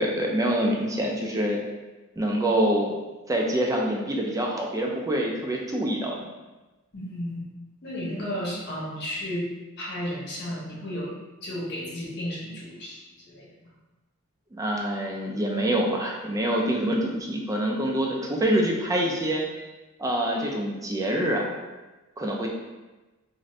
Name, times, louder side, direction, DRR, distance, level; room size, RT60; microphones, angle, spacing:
voice 1, 0.0-1.6 2.2-3.0 3.3-6.3 8.2-8.3 14.5-19.4 20.0-21.5 22.2-22.5, right 1 dB, 15° right, -1 dB, 0.3 m, -26 dB
voice 2, 6.9-7.4 7.8-9.5 9.8-13.5, equal, 55° left, -5 dB, 0.9 m, -33 dB
2.6 x 2.5 x 3.1 m, 1.1 s
head